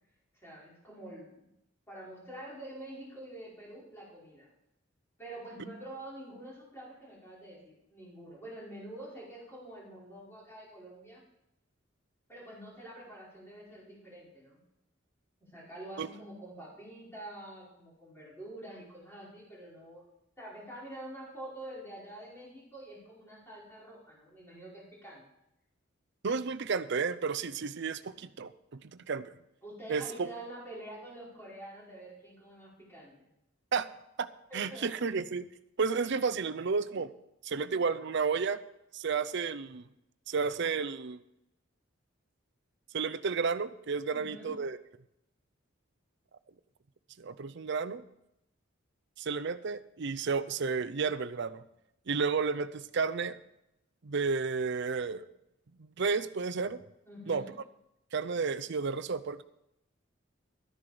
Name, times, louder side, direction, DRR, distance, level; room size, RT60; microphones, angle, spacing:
voice 1, 0.4-1.5 1.9-4.5 5.2-11.2 12.3-14.6 15.4-20.1 20.4-25.2 29.6-33.3 34.5-34.9 36.0-36.1 44.1-44.6 57.1-57.5, right 1 dB, 10° left, -6 dB, 5.0 m, -47 dB
voice 2, 26.2-29.3 29.9-30.3 33.7-33.9 34.2-34.3 34.5-35.5 35.8-37.1 37.4-38.6 38.9-39.9 40.3-41.2 42.9-44.8 47.2-48.0 49.2-51.6 52.1-53.4 54.0-55.3 55.8-56.8 57.3-57.4 58.1-59.4, right 5 dB, 60° right, 14 dB, 0.6 m, -32 dB
12.5 x 9.9 x 5.0 m, 0.83 s
head